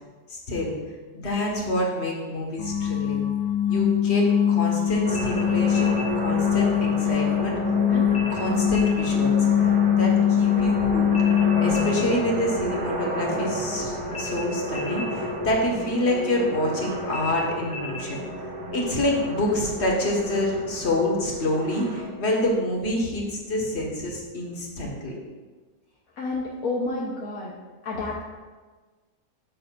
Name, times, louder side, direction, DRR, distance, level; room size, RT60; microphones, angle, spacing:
voice 1, 0.3-0.7 1.1-3.3 3.7-7.6 7.9-11.1 11.6-18.2 18.7-25.2, left 1 dB, 40° left, -2 dB, 1.8 m, -27 dB
sound 1, 2.6-12.3, left 9 dB, 80° left, 1.3 m, -22 dB
sound 2, 5.0-22.0, right 1 dB, 65° right, 2.1 m, -32 dB
sound 3, 5.1-6.1 8.1-9.1 11.1-12.1 14.1-15.1 17.1-18.1, left 2 dB, 25° left, 0.9 m, -37 dB
voice 2, 26.2-27.5 27.8-28.2, left 2 dB, 60° left, -3 dB, 1.4 m, -29 dB
13.5 x 6.7 x 2.5 m, 1.3 s
omnidirectional pair, 1.8 m